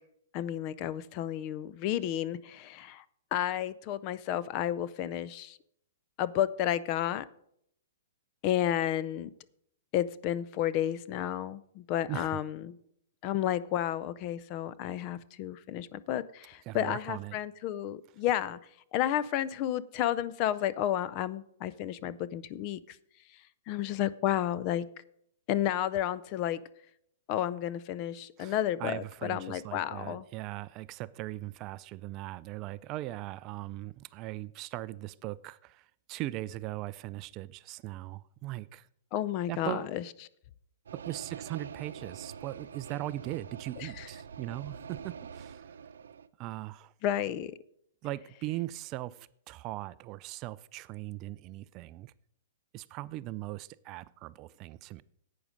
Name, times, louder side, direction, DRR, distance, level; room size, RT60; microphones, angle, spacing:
voice 1, 0.3-3.0 3.3-5.6 6.2-7.3 8.4-9.3 9.9-12.7 13.2-18.6 18.9-23.0 23.7-24.9 25.5-26.6 27.3-30.3 39.1-40.0 43.8-44.1 47.0-47.5, left 11 dB, 35° left, 0.5 m, -31 dB
voice 2, 12.1-12.4 16.7-17.4 28.4-38.9 39.5-39.9 40.9-45.6 46.4-46.9 48.0-52.1 52.7-55.0, right 16 dB, 30° right, 0.3 m, -39 dB
sound 1, 40.9-46.3, right 7 dB, 85° right, 0.6 m, -45 dB
11.0 x 8.6 x 5.2 m
hypercardioid pair, 155°, 0 cm